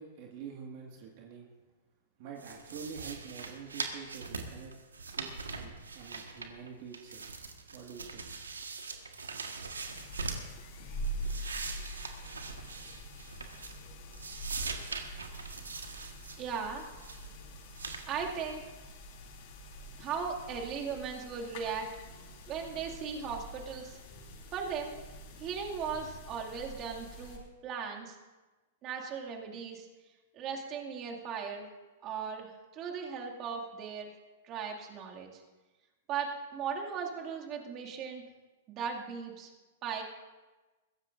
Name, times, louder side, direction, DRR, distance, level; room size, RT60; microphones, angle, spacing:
voice 1, 0.0-1.5 2.2-4.7 5.1-8.4 16.9-17.1, right 6 dB, 50° right, 0 dB, 1.8 m, -47 dB
sound 1, 2.4-6.7 6.9-10.5 10.9-13.9 14.1-16.4 16.8-17.3 17.7-18.1, right 4 dB, 90° right, 1.5 m, -41 dB
sound 2, 9.8-27.4, right 1 dB, 55° left, 4.1 m, -45 dB
voice 2, 16.4-16.9 18.1-18.6 20.0-21.9 22.5-24.0 24.5-24.9 25.4-28.2 28.8-29.9 30.3-31.7 32.0-34.1 34.4-35.4 36.1-38.2 38.7-39.5 39.8-40.0, right 6 dB, 35° right, 0 dB, 2.2 m, -37 dB
21.5 x 16.0 x 2.6 m, 1.2 s
hypercardioid pair, 110°, 0 cm